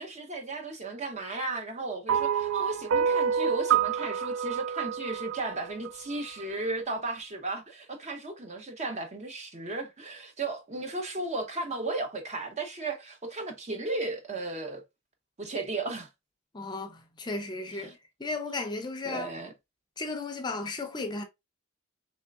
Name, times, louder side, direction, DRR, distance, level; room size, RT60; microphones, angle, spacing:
voice 1, 0.0-14.8 15.4-16.1 17.7-18.0 19.0-19.5, right 2 dB, 35° right, 0.7 m, -35 dB
sound 1, 2.1-6.4, right 7 dB, 65° right, 0.3 m, -28 dB
voice 2, 16.5-17.9 18.2-19.3 20.0-21.2, left 3 dB, 20° left, 0.5 m, -34 dB
3.5 x 3.2 x 2.4 m
head